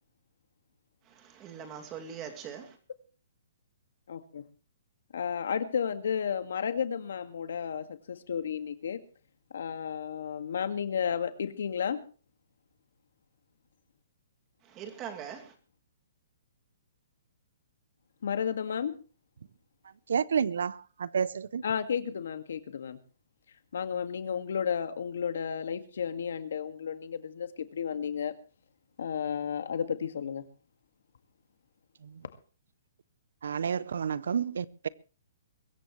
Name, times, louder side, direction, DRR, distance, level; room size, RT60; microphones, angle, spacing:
voice 1, 1.0-2.8 14.6-15.5, right 8 dB, 20° right, 2.6 m, -42 dB
voice 2, 4.1-4.4 5.1-9.0 9.5-12.0 18.2-18.9 21.6-23.0 23.7-28.4 29.0-30.5, left 7 dB, 70° left, 2.0 m, -32 dB
voice 3, 20.1-21.6 32.0-32.2 33.4-34.9, right 7 dB, 75° right, 0.8 m, -30 dB
23.0 x 14.5 x 3.2 m
hypercardioid pair, 160°, 0 cm